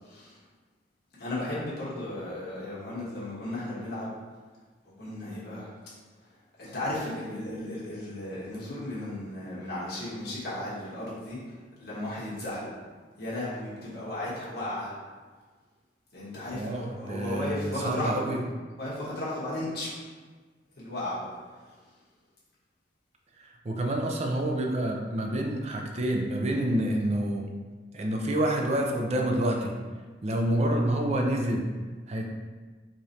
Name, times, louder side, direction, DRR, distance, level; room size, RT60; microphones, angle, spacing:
voice 1, 0.1-0.4 1.2-4.1 5.0-5.7 6.6-11.4 11.8-12.7 13.2-14.9 16.1-18.3 18.8-20.0 20.8-21.3, left 1 dB, 60° left, -8 dB, 1.2 m, -35 dB
voice 2, 16.5-18.4 23.4-27.4 27.9-29.7 30.2-31.7 32.1-32.3, right 1 dB, 35° right, 2 dB, 0.5 m, -28 dB
4.9 x 3.0 x 2.7 m, 1.4 s
head